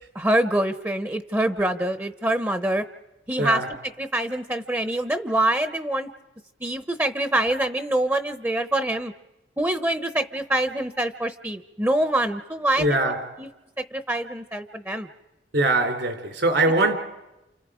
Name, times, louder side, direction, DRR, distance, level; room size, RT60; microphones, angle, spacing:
voice 1, 0.1-2.8 3.3-3.6 4.0-6.1 6.6-9.1 9.6-13.1 13.4-13.5 13.9-15.1, right 1 dB, 10° right, 0.8 m, -25 dB
voice 2, 3.4-3.7 12.8-13.2 15.5-16.9, right 2 dB, 75° right, 3.6 m, -22 dB
29.5 x 29.0 x 5.0 m
head